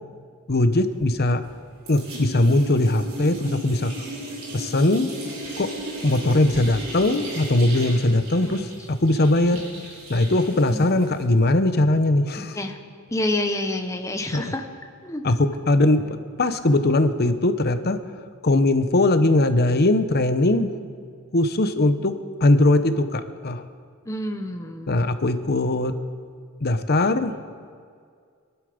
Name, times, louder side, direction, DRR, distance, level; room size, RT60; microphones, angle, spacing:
voice 1, 0.5-1.4 1.9-3.9 4.5-5.1 5.6-5.7 6.0-8.7 9.0-9.6 10.1-12.6 14.3-14.5 15.2-16.0 16.4-18.0 18.4-20.7 21.3-22.1 22.4-23.6 24.9-25.9 26.6-27.4, left 2 dB, 45° left, 10 dB, 0.9 m, -20 dB
sound 1, 1.0-1.6 1.9-11.2, right 1 dB, 65° right, 4.9 m, -36 dB
voice 2, 10.7-11.1 12.4-12.8 13.1-14.6 15.0-15.2 24.1-25.1, left 1 dB, 15° left, 4 dB, 1.1 m, -28 dB
24.0 x 11.5 x 5.2 m, 2.1 s
head